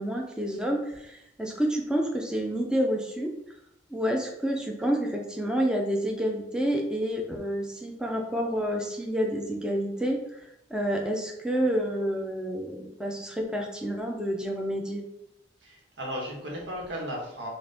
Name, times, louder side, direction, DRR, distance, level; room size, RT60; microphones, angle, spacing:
voice 1, 0.0-3.3 3.9-10.2 10.7-15.0, equal, 5° right, 1 dB, 0.4 m, -29 dB
voice 2, 15.6-17.5, equal, 85° right, -2 dB, 1.3 m, -35 dB
4.0 x 2.4 x 3.4 m, 0.84 s
head